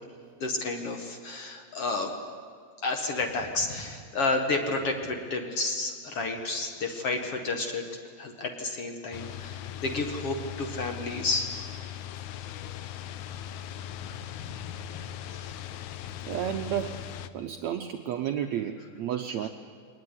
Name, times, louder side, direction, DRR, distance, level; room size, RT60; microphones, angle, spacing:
voice 1, 0.4-2.1 2.8-7.9 8.2-11.6 14.0-14.4 14.9-15.7, left 3 dB, 50° left, 4 dB, 2.1 m, -31 dB
sound 1, 9.1-17.3, left 10 dB, 75° left, 1.8 m, -39 dB
voice 2, 16.3-17.0 17.3-19.5, right 10 dB, 90° right, 5 dB, 1.5 m, -31 dB
22.5 x 19.5 x 9.9 m, 2.1 s
omnidirectional pair, 4.3 m